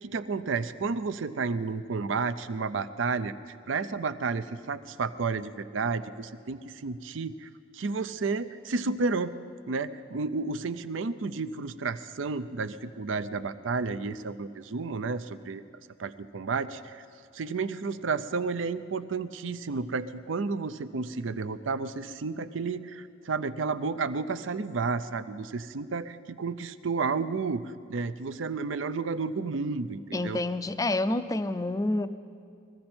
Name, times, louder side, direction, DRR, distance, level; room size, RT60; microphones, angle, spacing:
voice 1, 0.0-9.4 9.7-15.6 16.0-17.0 17.3-30.4, right 4 dB, 70° right, 13 dB, 0.5 m, -31 dB
voice 2, 30.1-32.1, left 2 dB, 15° left, 12 dB, 0.4 m, -28 dB
21.5 x 15.0 x 4.4 m, 2.4 s
head